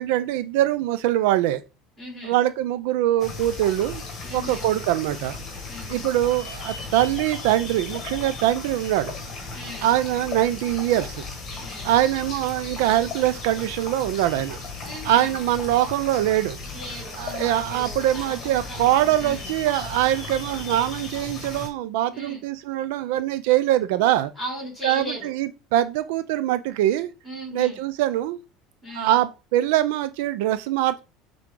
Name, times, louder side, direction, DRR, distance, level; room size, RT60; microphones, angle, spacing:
voice 1, 0.0-1.6 2.2-4.0 4.3-5.4 5.9-9.1 9.8-11.2 11.8-14.6 15.0-16.6 17.2-24.3 24.8-27.1 27.5-28.4 28.9-31.0, right 13 dB, 70° right, 0.4 m, -23 dB
voice 2, 2.0-2.4 4.2-4.7 5.7-6.1 9.5-9.9 11.6-11.9 14.8-15.4 16.7-19.5 22.1-22.4 24.4-25.3 27.2-27.8 28.8-29.2, equal, 5° left, 3.6 m, -37 dB
sound 1, 3.2-21.7, left 3 dB, 25° left, 1.7 m, -36 dB
7.3 x 3.7 x 3.8 m
cardioid pair, 175°, 0 cm